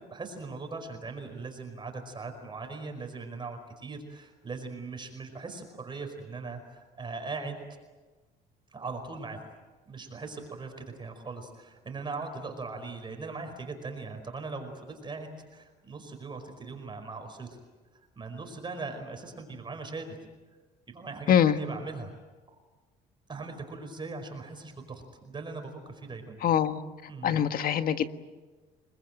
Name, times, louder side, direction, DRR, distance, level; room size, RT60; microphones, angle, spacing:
voice 1, 0.1-7.6 8.7-9.4 9.9-17.6 17.9-20.2 20.9-22.2 22.5-22.6 23.3-26.4 27.1-27.4, right 3 dB, 25° right, 5 dB, 5.0 m, -40 dB
voice 2, 26.4-26.8 27.2-28.1, left 9 dB, 60° left, 9 dB, 1.6 m, -23 dB
29.5 x 21.0 x 9.1 m, 1.3 s
cardioid pair, 110°, 17 cm